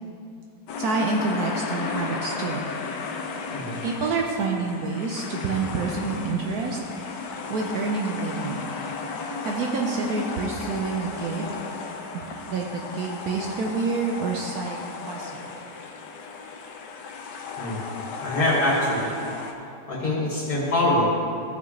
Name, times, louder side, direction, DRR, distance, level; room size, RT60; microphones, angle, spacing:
sound 1, 0.7-19.5, left 4 dB, 85° left, 1.4 m, -35 dB
voice 1, 0.8-2.6 3.8-8.6 9.4-11.5 12.1-15.5, right 4 dB, 70° right, 0 dB, 1.1 m, -28 dB
voice 2, 18.2-19.1 19.9-21.1, left 1 dB, 65° left, -8 dB, 2.4 m, -24 dB
14.5 x 6.1 x 3.2 m, 2.6 s
omnidirectional pair, 1.8 m